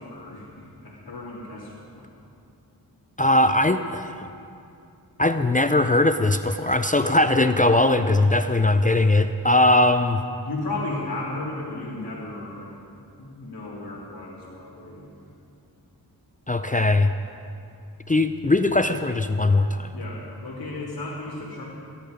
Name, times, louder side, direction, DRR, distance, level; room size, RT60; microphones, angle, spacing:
voice 1, 0.0-2.1 10.4-12.7 13.2-15.1 19.9-21.6, left 2 dB, 80° left, -8 dB, 2.8 m, -34 dB
voice 2, 3.2-4.3 5.2-10.2 16.5-17.1 18.1-19.9, left 2 dB, 20° left, 9 dB, 0.5 m, -20 dB
23.0 x 10.5 x 5.2 m, 2.6 s
cardioid pair, 55°, 39 cm